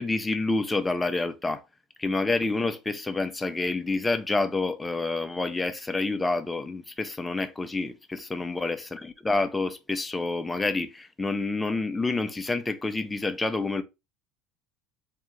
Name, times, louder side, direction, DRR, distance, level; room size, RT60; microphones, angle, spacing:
voice 1, 0.0-1.6 2.0-13.8, left 3 dB, 10° left, 0.5 m, -28 dB
3.6 x 2.4 x 3.1 m
supercardioid pair, 110°, 0 cm